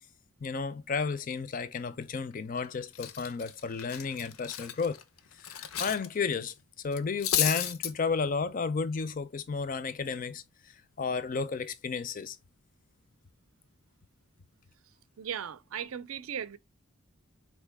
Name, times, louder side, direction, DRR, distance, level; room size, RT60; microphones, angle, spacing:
voice 1, 0.4-5.0 5.4-6.5 6.8-12.4, left 5 dB, 40° left, 0.4 m, -33 dB
Cutlery silverware, 2.3-2.6 2.9-6.1 6.3-6.5 6.9-7.9, left 10 dB, 80° left, 0.6 m, -32 dB
voice 2, 15.2-16.6, right 8 dB, 75° right, 0.4 m, -37 dB
4.4 x 3.2 x 3.4 m
head